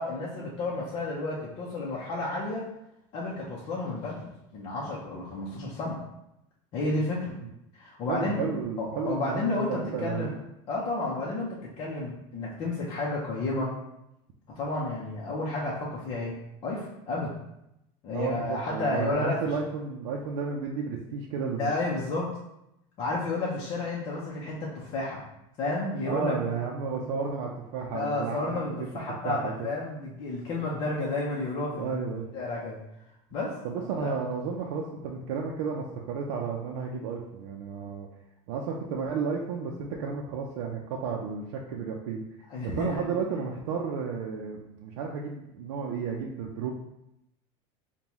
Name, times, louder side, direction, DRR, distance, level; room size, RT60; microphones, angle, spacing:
voice 1, 0.0-2.7 3.1-6.0 6.7-7.3 7.8-8.4 8.8-10.3 10.7-13.7 14.6-17.3 18.0-19.4 21.6-22.3 23.0-25.2 25.6-26.6 27.9-31.9 32.3-32.8 33.3-33.5 34.0-34.1 42.5-43.2, left 2 dB, 35° left, -5 dB, 0.6 m, -31 dB
voice 2, 8.1-10.3 18.1-21.7 26.0-28.9 29.2-29.5 31.7-32.3 33.6-38.1 38.5-42.2 42.6-46.7, right 5 dB, 90° right, -1 dB, 0.5 m, -32 dB
5.3 x 2.2 x 2.9 m, 0.85 s
cardioid pair, 175°, 14 cm